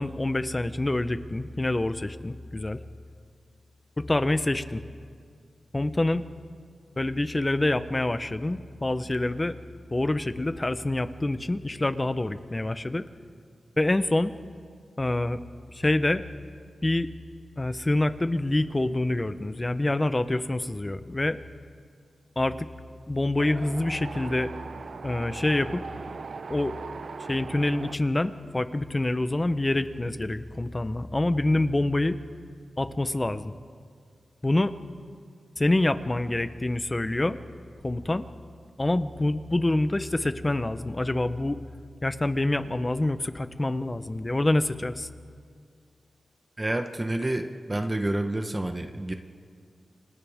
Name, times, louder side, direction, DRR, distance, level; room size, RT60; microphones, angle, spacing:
voice 1, 0.0-2.8 4.0-4.8 5.7-6.2 7.0-9.6 9.9-13.0 13.8-14.3 15.0-15.4 15.7-16.2 16.8-17.1 17.6-21.4 22.4-22.6 23.1-24.5 25.0-25.8 26.5-26.7 27.3-32.2 32.8-33.5 34.4-34.7 35.6-37.4 37.8-38.2 38.8-41.6 42.0-45.1, left 2 dB, 25° left, 12 dB, 0.8 m, -26 dB
Wind, 23.4-28.0, right 4 dB, 70° right, 0.8 m, -39 dB
voice 2, 46.6-49.1, right 1 dB, 25° right, 6 dB, 1.0 m, -29 dB
29.5 x 25.5 x 3.6 m, 2.1 s
wide cardioid pair, 80°, 0 cm